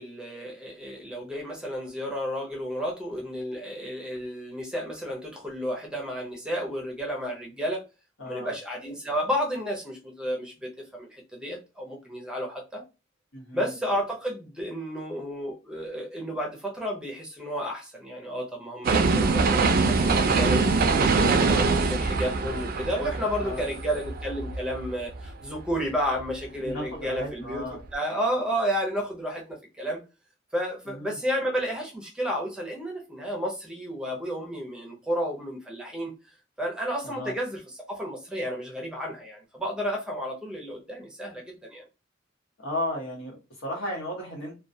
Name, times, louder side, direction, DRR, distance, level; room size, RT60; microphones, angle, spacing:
voice 1, 0.0-7.9 8.2-12.8 13.5-30.0 30.5-36.1 36.6-41.8, equal, 5° right, 0.6 m, -32 dB
voice 2, 8.2-8.5 13.3-13.7 23.4-23.7 26.6-27.8 30.9-31.2 37.0-37.3 42.6-44.5, left 1 dB, 80° left, 1.1 m, -34 dB
sound 1, 18.8-24.8 25.2-25.3, right 4 dB, 50° right, 0.4 m, -23 dB
2.2 x 2.2 x 2.6 m
head